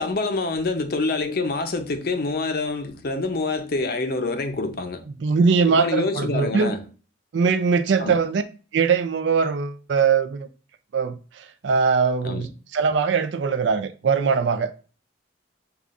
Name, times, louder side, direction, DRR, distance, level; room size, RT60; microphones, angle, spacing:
voice 1, 0.0-5.0 5.7-6.9 8.0-8.2 12.2-12.5, left 3 dB, 55° left, 0.6 m, -26 dB
voice 2, 5.2-6.7 7.3-8.4 8.7-10.5 10.9-14.7, right 5 dB, 70° right, 0.4 m, -21 dB
6.7 x 2.4 x 2.4 m
head